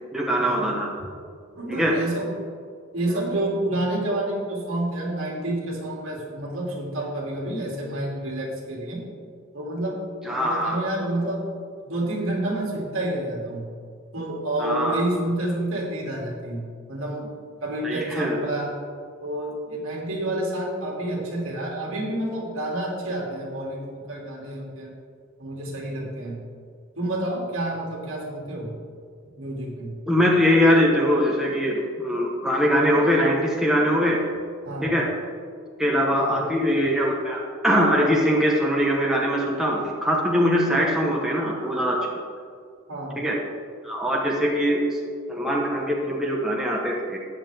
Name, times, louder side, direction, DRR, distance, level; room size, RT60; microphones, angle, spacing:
voice 1, 0.1-0.9 1.7-1.9 10.2-10.8 14.6-15.0 17.8-18.4 30.1-34.2 34.8-35.1 35.8-42.0 43.2-43.4 43.8-45.0 45.3-47.2, equal, ahead, -3 dB, 1.1 m, -22 dB
voice 2, 1.5-2.3 2.9-9.0 9.5-10.0 10.3-11.4 11.8-13.7 14.1-17.3 17.6-18.7 19.2-24.9 25.4-26.4 27.0-28.7 29.4-30.0 34.6-35.0 36.2-36.4 42.9-43.2, right 1 dB, 70° right, -2 dB, 2.7 m, -29 dB
13.5 x 9.3 x 3.6 m, 2.2 s
head